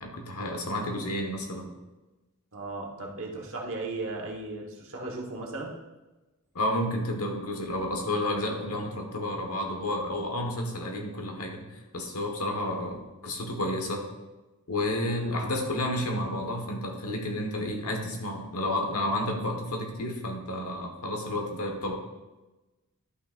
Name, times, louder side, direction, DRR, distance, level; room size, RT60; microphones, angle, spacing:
voice 1, 0.0-1.7 6.5-14.0 14.7-22.0, left 1 dB, 75° left, 2 dB, 1.3 m, -31 dB
voice 2, 2.5-5.7, right 2 dB, 60° right, -1 dB, 1.4 m, -36 dB
11.5 x 5.9 x 2.5 m, 1.1 s
head